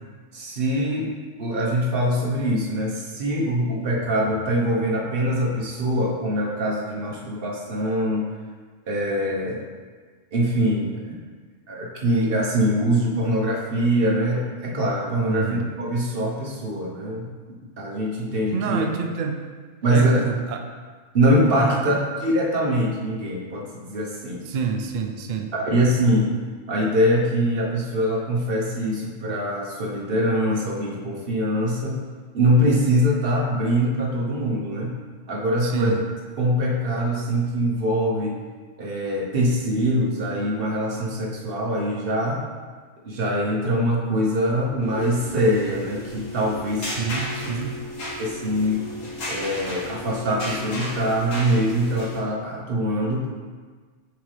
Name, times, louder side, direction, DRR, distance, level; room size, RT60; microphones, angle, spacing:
voice 1, 0.3-1.1 1.4-8.3 8.9-9.6 10.3-10.9 11.7-17.3 17.8-18.8 19.8-20.2 21.1-21.9 22.2-24.4 25.5-26.3 26.7-32.0 32.3-35.0 35.3-36.0 36.4-38.4 38.8-42.4 43.0-46.9 48.2-48.8 49.3-53.3, equal, 45° right, -2 dB, 1.1 m, -23 dB
voice 2, 15.3-15.6 18.5-19.5 19.9-20.7 21.5-21.8 24.4-25.5 35.6-36.0 47.0-47.8, right 6 dB, 85° right, 4 dB, 0.4 m, -27 dB
sound 1, 44.7-52.2, left 1 dB, 75° left, 1.6 m, -34 dB
7.1 x 4.1 x 3.3 m, 1.5 s
omnidirectional pair, 1.4 m